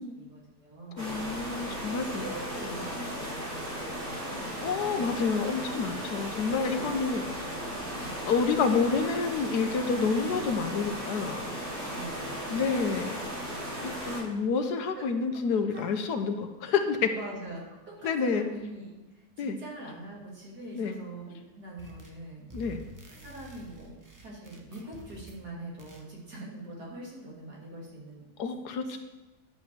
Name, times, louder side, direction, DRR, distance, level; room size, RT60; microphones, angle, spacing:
voice 1, 0.0-1.3 2.0-5.3 6.5-7.3 7.9-8.2 11.9-12.6 15.0-15.1 15.7-16.2 17.1-22.5 23.1-28.3 28.9-29.0, right 2 dB, 75° right, -4 dB, 3.1 m, -44 dB
voice 2, 1.0-2.4 4.6-7.2 8.3-11.5 12.5-13.2 13.8-17.1 18.0-18.5 19.4-19.6 20.7-21.0 22.5-22.8 28.4-29.0, left 5 dB, 85° left, 7 dB, 1.5 m, -28 dB
sound 1, 1.0-14.2, equal, 55° right, 3.7 m, -36 dB
sound 2, 21.8-22.2 22.5-25.4 25.8-26.1, right 1 dB, 15° right, 0.8 m, -49 dB
10.5 x 5.5 x 7.6 m, 1.1 s
omnidirectional pair, 1.7 m